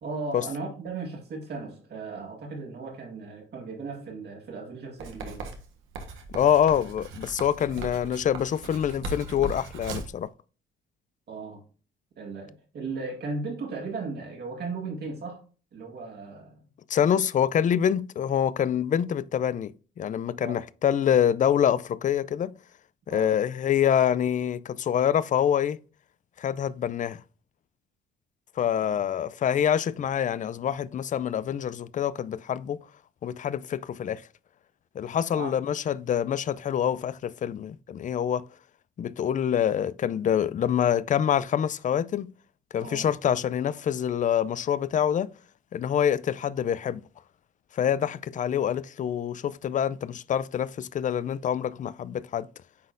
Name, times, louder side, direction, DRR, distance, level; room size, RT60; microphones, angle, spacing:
voice 1, 0.0-5.5 11.3-11.6 12.2-15.4 15.7-16.6 20.4-20.6 23.1-23.4 28.8-29.0 35.3-35.5 42.8-43.1, right 4 dB, 55° right, 2.1 m, -36 dB
Writing, 5.0-10.2, right 3 dB, 90° right, 1.3 m, -38 dB
voice 2, 6.3-10.3 16.9-22.6 23.1-25.8 26.4-27.2 28.6-32.8 33.2-34.2 35.0-38.4 39.0-42.3 42.7-45.3 45.7-47.0 47.7-52.5, left 9 dB, 40° left, 0.4 m, -26 dB
9.4 x 4.0 x 2.6 m
cardioid pair, 90°, 20 cm